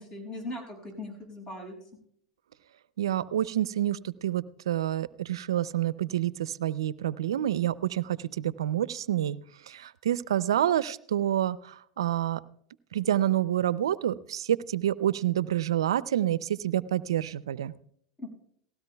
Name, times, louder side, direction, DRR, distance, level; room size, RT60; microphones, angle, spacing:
voice 1, 0.0-1.7 18.2-18.3, left 1 dB, 30° left, 0 dB, 6.2 m, -39 dB
voice 2, 3.0-9.4 9.6-12.4 12.9-17.7, right 11 dB, 85° right, 18 dB, 0.4 m, -28 dB
18.5 x 16.5 x 2.3 m, 0.67 s
hypercardioid pair, 100°, 3 cm